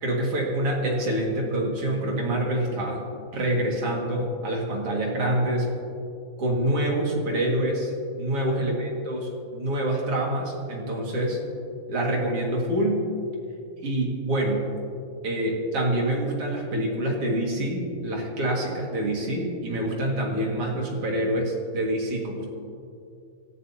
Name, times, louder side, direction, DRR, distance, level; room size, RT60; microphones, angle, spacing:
voice 1, 0.0-3.0 3.3-5.7 6.4-7.9 8.2-11.4 11.9-13.1 13.8-14.7 15.2-22.4, right 1 dB, 45° right, -1 dB, 2.5 m, -26 dB
26.0 x 14.0 x 2.8 m, 2.5 s
omnidirectional pair, 4.5 m